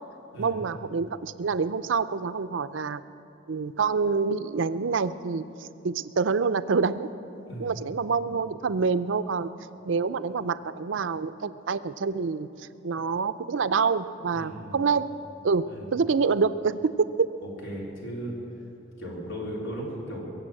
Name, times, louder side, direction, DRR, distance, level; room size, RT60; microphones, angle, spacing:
voice 1, 0.4-3.0 3.5-5.4 5.8-7.1 7.6-9.5 9.8-15.1 15.4-15.6 15.9-16.9 17.2-17.3, right 5 dB, 70° right, 13 dB, 0.5 m, -26 dB
voice 2, 14.3-14.8 15.7-15.9 17.4-18.3 19.0-20.2, right 1 dB, 85° left, -4 dB, 4.0 m, -36 dB
23.0 x 7.8 x 7.8 m, 2.8 s
head